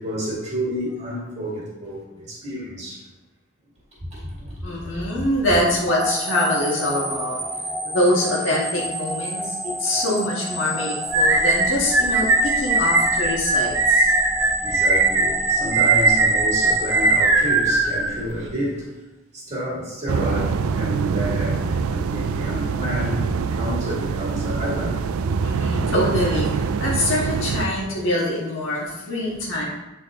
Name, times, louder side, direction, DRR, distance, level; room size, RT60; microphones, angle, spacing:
voice 1, 0.0-3.1 4.0-5.3 9.3-9.4 9.8-9.9 14.6-18.9 19.3-25.4 25.7-25.8 26.1-26.2 27.6-27.7, equal, 30° right, -5 dB, 2.3 m, -30 dB
voice 2, 4.6-7.4 7.8-14.1 25.4-29.6, left 1 dB, 65° left, -4 dB, 1.6 m, -24 dB
sound 1, 5.9-18.0, equal, ahead, 0.3 m, -30 dB
sound 2, 11.1-18.5, right 3 dB, 60° right, 0.9 m, -19 dB
sound 3, 20.1-27.7, right 5 dB, 85° right, 0.4 m, -24 dB
8.1 x 4.3 x 3.7 m, 1.0 s
head